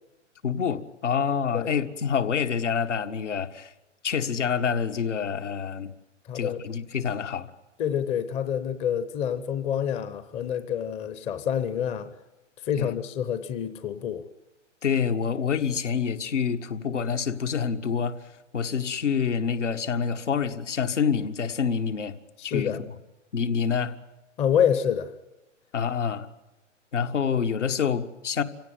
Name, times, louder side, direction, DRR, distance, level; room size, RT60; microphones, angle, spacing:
voice 1, 0.4-3.7 4.0-5.9 6.3-7.5 12.8-12.9 14.8-18.2 18.5-22.2 22.4-22.8 23.3-24.0 25.7-26.3 26.9-28.4, left 6 dB, 70° left, 1.8 m, -27 dB
voice 2, 6.3-6.6 7.8-12.1 12.6-14.2 22.4-22.8 24.4-25.1, left 8 dB, 15° left, 0.8 m, -27 dB
26.5 x 17.0 x 9.4 m
figure-of-eight pair, 125°, 37 cm